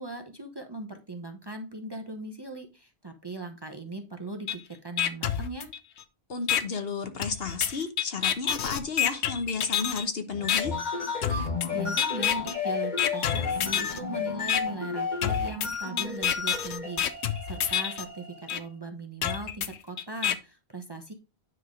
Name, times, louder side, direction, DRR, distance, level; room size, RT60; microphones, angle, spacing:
voice 1, 0.0-5.7 11.7-21.1, right 2 dB, 25° right, 0.8 m, -39 dB
sound 1, 4.5-4.6 5.0-6.0 6.5-6.6 7.2-10.0 10.5-10.6 11.2-11.7 12.0-12.5 13.0-14.0 14.5-14.6 15.2-18.0 18.5-18.6 19.2-20.3, left 10 dB, 85° left, 1.0 m, -28 dB
voice 2, 6.3-10.7, left 4 dB, 65° left, 1.3 m, -32 dB
sound 2, 10.3-18.6, left 5 dB, 40° left, 1.9 m, -33 dB
9.7 x 3.7 x 4.9 m
omnidirectional pair, 1.1 m